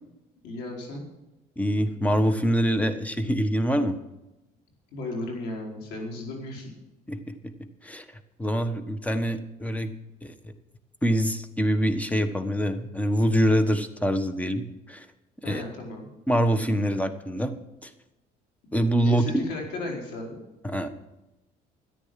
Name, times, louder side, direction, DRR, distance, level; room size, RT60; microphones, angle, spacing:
voice 1, 0.4-1.0 4.9-6.7 15.4-16.1 19.0-20.4, left 2 dB, 90° left, 0 dB, 4.6 m, -35 dB
voice 2, 1.6-4.0 7.1-7.3 7.8-8.0 8.4-9.9 11.0-15.0 15.4-15.6 16.3-17.5 17.8-17.9 18.7-19.4 20.6-20.9, equal, 10° left, 10 dB, 1.4 m, -25 dB
13.5 x 10.0 x 5.9 m, 0.95 s
cardioid pair, 110°, 17 cm